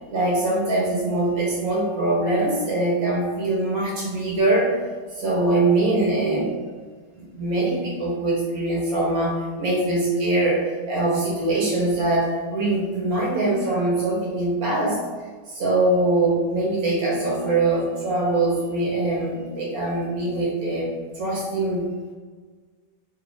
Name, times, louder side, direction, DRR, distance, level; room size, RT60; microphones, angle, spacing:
voice 1, 0.1-4.8 5.2-6.5 7.2-15.0 15.5-21.9, right 2 dB, 60° right, -4 dB, 1.1 m, -23 dB
3.2 x 2.3 x 3.8 m, 1.5 s
omnidirectional pair, 1.9 m